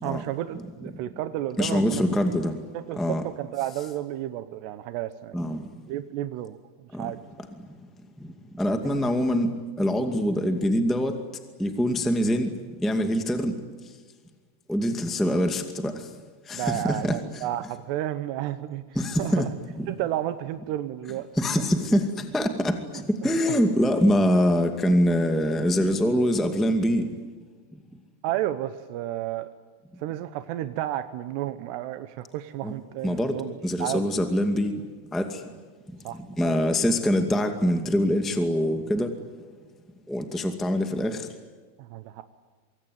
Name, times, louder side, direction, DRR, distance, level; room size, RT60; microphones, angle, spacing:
voice 1, 0.0-2.0 2.7-5.4 5.9-6.6 7.0-7.2 8.8-8.9 16.5-18.8 19.2-19.5 19.9-21.3 22.9-23.3 28.2-29.5 30.0-33.5 33.8-34.1 36.0-36.6 41.8-42.2, right 13 dB, 85° right, 11 dB, 3.1 m, -32 dB
voice 2, 1.6-2.6 3.0-3.2 5.3-5.6 6.9-7.1 8.6-9.5 9.8-11.2 11.6-12.5 12.8-13.5 14.7-15.9 16.5-17.1 18.9-19.5 19.8-19.9 21.3-27.0 32.6-32.7 33.0-33.4 33.6-34.7 35.1-35.4 36.1-39.1 40.1-41.3, equal, ahead, 6 dB, 0.4 m, -24 dB
25.0 x 24.5 x 9.3 m, 1.4 s
omnidirectional pair, 4.7 m